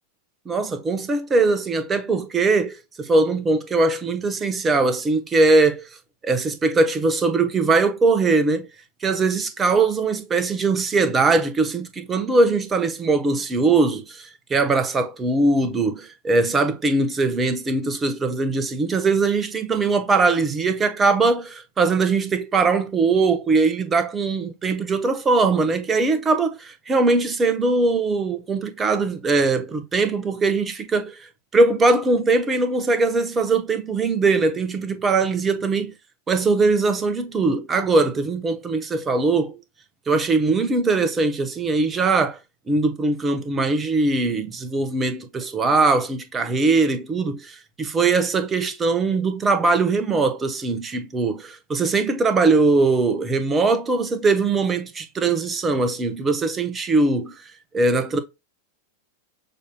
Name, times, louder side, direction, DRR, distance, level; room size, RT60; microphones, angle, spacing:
voice 1, 0.5-5.9 6.2-8.7 9.0-31.3 31.5-35.9 36.3-39.6 40.1-42.4 42.7-57.4 57.7-58.2, right 3 dB, 20° right, 0.9 m, -21 dB
6.4 x 2.8 x 2.2 m
figure-of-eight pair, 90°, 0 cm